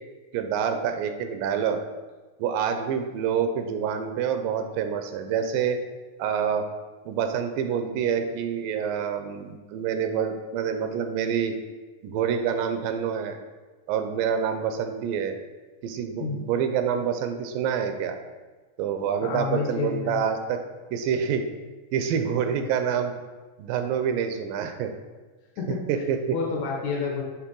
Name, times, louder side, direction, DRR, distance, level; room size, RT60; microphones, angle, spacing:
voice 1, 0.3-1.8 2.4-5.8 6.2-6.7 7.1-11.5 12.0-13.4 13.9-15.3 15.8-18.2 18.8-20.6 20.9-21.4 21.9-23.1 23.6-24.9 25.9-26.4, right 7 dB, 85° right, 7 dB, 2.2 m, -27 dB
voice 2, 19.2-20.2 25.6-26.0 26.3-27.2, left 5 dB, 70° left, -2 dB, 1.9 m, -29 dB
7.1 x 3.8 x 3.8 m, 1.3 s
omnidirectional pair, 3.9 m